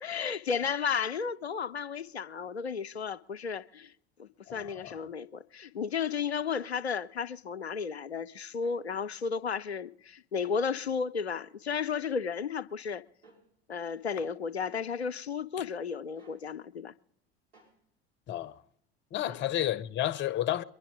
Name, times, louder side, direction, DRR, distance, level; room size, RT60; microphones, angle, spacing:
voice 1, 0.0-3.9 4.2-13.0 13.7-16.9 19.3-19.4, left 6 dB, 85° left, 0.5 m, -33 dB
voice 2, 4.5-4.9 18.3-18.5 19.1-20.6, left 13 dB, 35° left, 0.7 m, -31 dB
sound 1, 6.6-6.8 8.5-8.8 10.4-10.6 11.9-12.1 13.2-13.4 14.7-14.9 16.2-16.4 17.5-17.7, right 3 dB, 70° right, 6.2 m, -59 dB
23.5 x 11.0 x 3.6 m
figure-of-eight pair, 70°, 32 cm